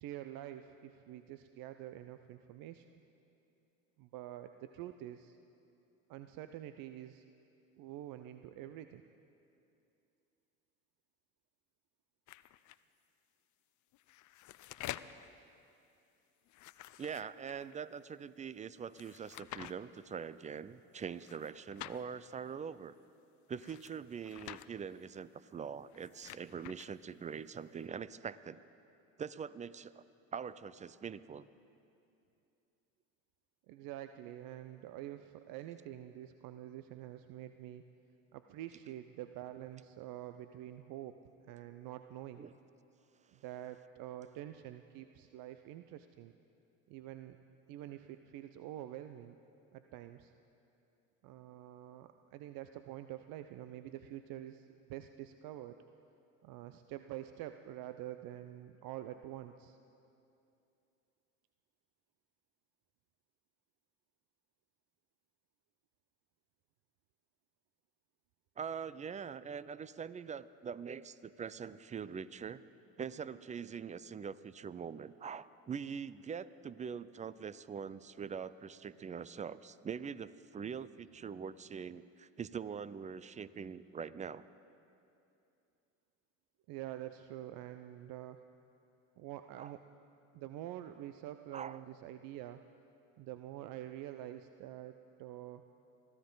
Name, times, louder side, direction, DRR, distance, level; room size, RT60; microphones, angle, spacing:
voice 1, 0.0-2.9 4.0-5.4 6.1-7.2 7.8-9.0 33.7-37.8 38.3-41.1 41.5-42.4 43.3-46.3 46.9-47.4 47.7-49.4 49.7-50.3 51.2-55.8 56.4-59.8 86.7-88.4 89.2-89.8 90.3-92.6 93.2-95.6, right 13 dB, 55° right, 9 dB, 0.7 m, -47 dB
sound 1, 12.3-12.8 13.9-15.3 16.5-17.8 18.9-19.7 21.2-22.0 23.5-24.7 25.8-26.9, left 15 dB, 45° left, 0.6 m, -48 dB
voice 2, 17.0-23.0 23.5-28.6 29.2-30.0 30.3-31.5 42.4-42.5 68.6-72.6 73.0-84.4 89.6-89.7 91.5-91.8, right 6 dB, 20° right, 17 dB, 0.4 m, -43 dB
24.0 x 14.5 x 3.9 m, 2.7 s
hypercardioid pair, 75°, 40 cm